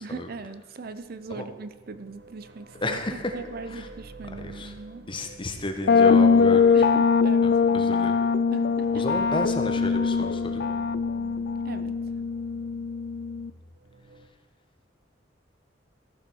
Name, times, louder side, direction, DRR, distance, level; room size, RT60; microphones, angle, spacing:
voice 1, 0.0-5.1 6.7-9.1 11.6-12.0, right 3 dB, 55° right, 12 dB, 0.6 m, -40 dB
sound 1, 0.8-14.3, right 3 dB, 75° right, 1.1 m, -49 dB
voice 2, 2.8-3.3 3.7-3.9 4.4-4.7 5.1-6.8 7.4-8.2 8.9-10.6, left 1 dB, 25° left, 5 dB, 1.2 m, -32 dB
sound 2, 5.9-13.5, left 5 dB, 60° left, 0.4 m, -22 dB
sound 3, 6.1-13.8, left 1 dB, 5° left, 1.3 m, -53 dB
14.0 x 7.2 x 6.2 m, 1.2 s
head